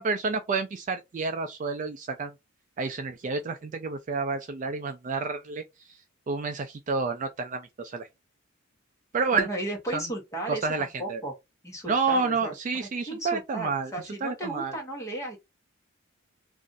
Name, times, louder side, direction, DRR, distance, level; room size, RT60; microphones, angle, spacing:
voice 1, 0.0-2.3 2.8-5.6 6.3-8.1 9.1-9.5 9.9-10.0 10.5-11.2 11.9-13.9 14.2-14.8, right 4 dB, 35° right, 0.3 m, -29 dB
voice 2, 9.3-11.3 11.6-12.5 12.8-15.4, right 1 dB, 15° left, 1.1 m, -35 dB
2.5 x 2.4 x 3.8 m
head